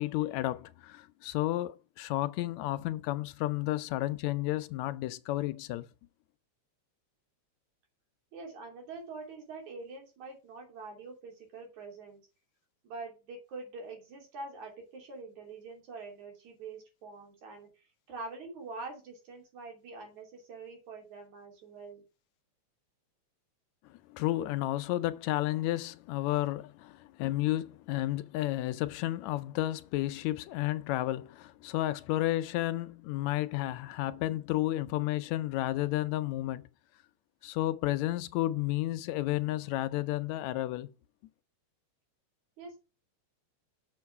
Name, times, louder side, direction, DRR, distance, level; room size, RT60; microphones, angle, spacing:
voice 1, 0.0-5.9 23.9-36.7 37.4-40.9, left 16 dB, 80° left, 1.8 m, -32 dB
voice 2, 8.3-12.2 12.8-17.7 18.1-22.0 42.6-42.8, right 3 dB, 80° right, 4.3 m, -45 dB
7.0 x 6.7 x 4.7 m
omnidirectional pair, 3.3 m